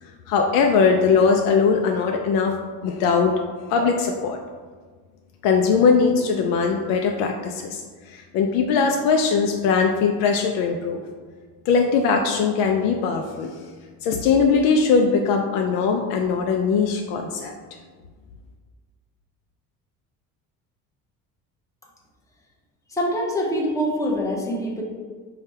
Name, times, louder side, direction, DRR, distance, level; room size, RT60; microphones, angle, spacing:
voice 1, 0.3-2.5 2.8-3.3 3.6-4.4 5.4-7.8 8.1-11.0 11.7-13.5 14.0-17.5, left 5 dB, 80° left, 3 dB, 0.5 m, -20 dB
voice 2, 22.9-24.8, equal, 10° left, -2 dB, 0.8 m, -24 dB
4.9 x 2.3 x 4.3 m, 1.5 s
cardioid pair, 110°, 33 cm